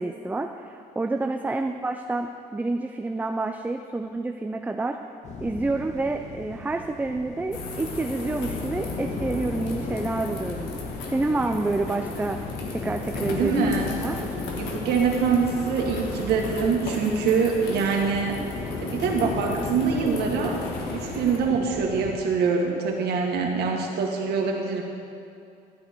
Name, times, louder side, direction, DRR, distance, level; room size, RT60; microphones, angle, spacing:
voice 1, 0.0-5.0 5.4-10.7 11.1-12.4 12.7-14.3, right 2 dB, 10° right, 4 dB, 0.4 m, -28 dB
sound 1, 5.2-22.1, left 3 dB, 45° left, 1.6 m, -35 dB
sound 2, 7.5-21.4, left 3 dB, 90° left, 1.5 m, -36 dB
voice 2, 13.3-13.9 14.6-18.4 18.8-20.6 20.9-24.8, right 5 dB, 75° right, 1 dB, 1.7 m, -24 dB
13.0 x 9.1 x 4.5 m, 2.6 s
cardioid pair, 110°, 17 cm